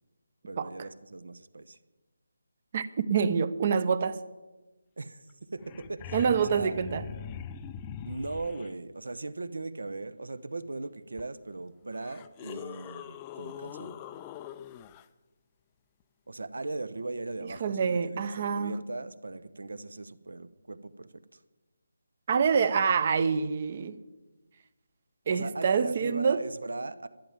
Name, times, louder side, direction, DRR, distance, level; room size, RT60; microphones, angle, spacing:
voice 1, 0.5-1.8 5.0-5.2 5.5-6.8 8.0-14.0 16.3-21.4 25.3-27.1, right 2 dB, 75° right, 14 dB, 0.9 m, -38 dB
voice 2, 2.7-4.2 6.1-7.0 17.6-18.8 22.3-24.0 25.3-26.4, right 6 dB, 40° right, 15 dB, 0.8 m, -26 dB
sound 1, 5.3-5.4 5.6-8.7 11.2-11.3 11.9-15.0 17.6-17.7, left 8 dB, 20° left, 0.5 m, -42 dB
11.5 x 10.5 x 7.4 m, 1.1 s
figure-of-eight pair, 155°, 0 cm